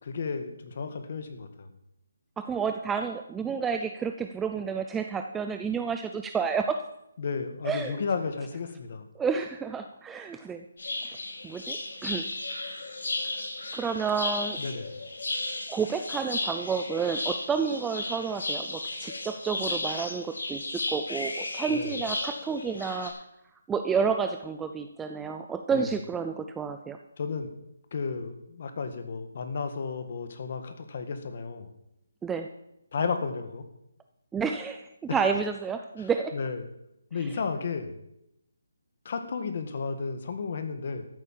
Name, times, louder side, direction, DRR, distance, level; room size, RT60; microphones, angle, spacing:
voice 1, 0.0-1.7 7.2-9.0 14.6-14.9 21.7-21.9 25.7-25.9 27.2-27.5 27.9-31.7 32.9-33.6 35.1-35.3 36.0-36.7 37.1-38.0 39.0-41.1, left 5 dB, 35° left, 8 dB, 1.7 m, -33 dB
voice 2, 2.4-6.8 7.7-8.0 9.2-10.7 11.4-12.3 13.7-14.6 15.7-20.6 20.9-23.1 23.7-27.0 32.2-32.5 34.3-36.3 37.2-37.3, right 6 dB, 5° right, 6 dB, 0.4 m, -30 dB
sound 1, 10.8-23.1, left 2 dB, 70° left, 6.4 m, -34 dB
13.5 x 8.3 x 7.4 m, 0.83 s
hypercardioid pair, 175°, 0 cm